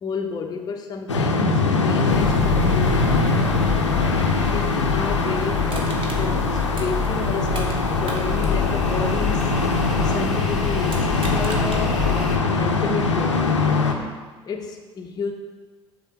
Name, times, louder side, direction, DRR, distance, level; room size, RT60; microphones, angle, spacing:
voice 1, 0.0-3.5 4.2-9.6 10.0-14.0 14.4-15.3, left 5 dB, 25° left, 2 dB, 0.7 m, -31 dB
sound 1, 1.1-13.9, left 3 dB, 85° left, 0.6 m, -22 dB
sound 2, 2.1-12.4, left 6 dB, ahead, 1.4 m, -28 dB
Crushing, 5.7-7.8 8.0-10.3 10.8-11.8 12.3-12.4, right 3 dB, 35° right, 1.1 m, -38 dB
6.7 x 3.8 x 5.8 m, 1.4 s
figure-of-eight pair, 60°, 15 cm